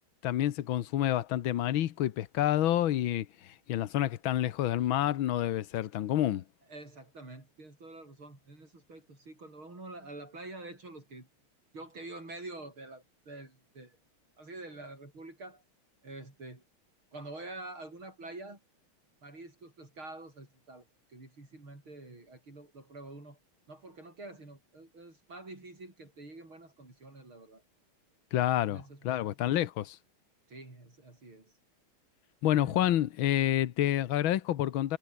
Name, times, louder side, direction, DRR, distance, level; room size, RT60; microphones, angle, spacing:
voice 1, 0.2-6.4 28.3-30.0 32.4-35.0, left 12 dB, 75° left, 1.8 m, -28 dB
voice 2, 6.7-11.3 11.7-14.0 14.4-15.6 16.0-16.6 17.1-18.6 19.2-23.4 23.7-27.6 28.5-29.2 30.5-31.5 32.6-33.0, right 2 dB, 75° right, 8.8 m, -47 dB
omnidirectional pair, 2.3 m